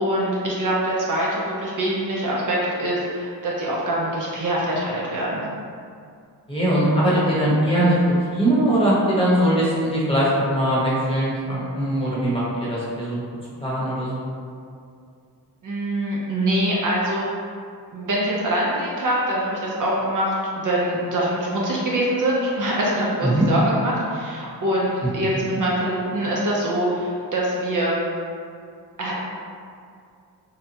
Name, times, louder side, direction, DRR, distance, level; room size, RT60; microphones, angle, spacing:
voice 1, 0.0-5.5 15.6-17.2 17.9-28.0 29.0-29.2, right 1 dB, 50° right, -5 dB, 0.5 m, -24 dB
voice 2, 6.5-7.9 8.3-13.2 13.6-14.3 23.2-23.4, right 1 dB, 15° left, -8 dB, 0.9 m, -21 dB
2.8 x 2.1 x 2.7 m, 2.3 s
cardioid pair, 65°, 41 cm